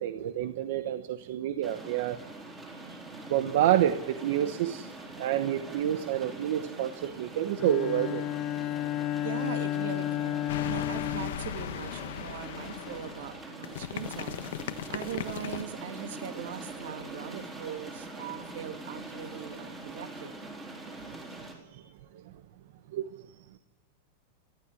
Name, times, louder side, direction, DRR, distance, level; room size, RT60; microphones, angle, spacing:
voice 1, 0.0-2.2 2.9-3.0 3.3-4.9 5.2-8.2 14.9-15.0 18.2-18.4 22.9-23.0, right 11 dB, 55° right, 10 dB, 1.0 m, -28 dB
sound 1, 1.6-21.5, right 2 dB, 10° right, 3.8 m, -44 dB
Bowed string instrument, 7.6-12.2, left 13 dB, 30° left, 0.9 m, -32 dB
voice 2, 9.2-20.4, right 9 dB, 70° right, 7 dB, 2.8 m, -41 dB
sound 2, 10.5-15.6, left 11 dB, 70° left, 1.2 m, -38 dB
19.5 x 14.5 x 9.8 m, 0.99 s
supercardioid pair, 175°, 0 cm